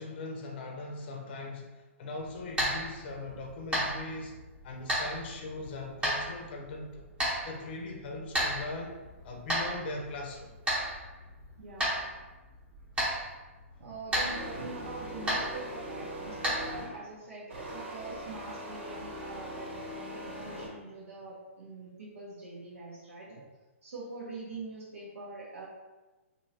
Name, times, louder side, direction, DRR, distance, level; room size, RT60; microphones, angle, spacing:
voice 1, 0.0-4.3 4.6-7.0 7.4-9.0 9.2-10.5, left 2 dB, 50° left, 2 dB, 0.6 m, -40 dB
sound 1, 2.2-16.8, equal, 15° right, 1.0 m, -35 dB
voice 2, 11.6-12.1 13.8-23.4 23.8-25.7, right 3 dB, 80° right, -7 dB, 1.0 m, -44 dB
sound 2, 14.2-17.1 17.5-20.7, equal, 60° right, 1.2 m, -41 dB
3.1 x 2.7 x 2.8 m, 1.2 s
hypercardioid pair, 140°, 7 cm